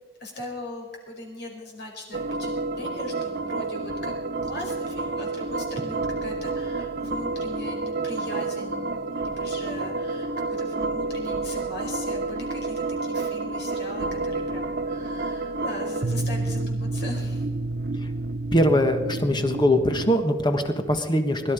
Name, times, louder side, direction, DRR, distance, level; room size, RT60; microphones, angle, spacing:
voice 1, 0.2-4.1 4.4-17.5, left 2 dB, 55° left, 0 dB, 4.7 m, -39 dB
sound 1, 2.1-20.1, right 3 dB, 50° right, 0.7 m, -29 dB
voice 2, 18.5-21.5, left 1 dB, 20° left, 7 dB, 1.4 m, -22 dB
22.0 x 12.5 x 5.1 m, 1.3 s
head